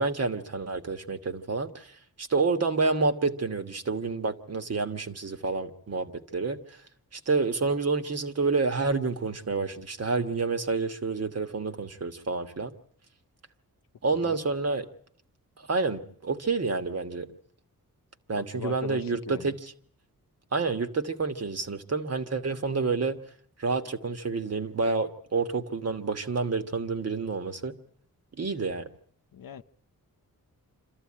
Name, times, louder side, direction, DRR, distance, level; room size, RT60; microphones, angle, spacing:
voice 1, 0.0-6.8 7.1-12.7 14.0-14.8 15.6-17.3 18.3-19.7 20.5-23.2 23.6-27.8 28.4-28.9, right 4 dB, 45° right, 1.4 m, -29 dB
voice 2, 18.3-19.5 29.3-29.6, left 9 dB, 75° left, 0.8 m, -39 dB
26.5 x 14.0 x 8.6 m
wide cardioid pair, 135°, 35 cm